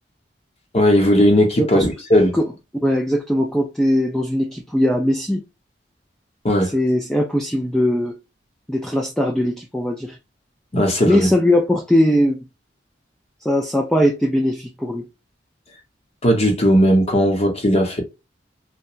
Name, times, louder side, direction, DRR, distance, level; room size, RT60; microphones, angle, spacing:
voice 1, 0.7-2.4 6.4-6.7 10.7-11.3 16.2-18.0, equal, 35° left, 0.8 m, -16 dB
voice 2, 2.8-5.4 6.7-8.2 8.7-10.2 11.1-12.4 13.5-15.1, left 1 dB, 5° left, 0.3 m, -19 dB
2.8 x 2.2 x 2.4 m
head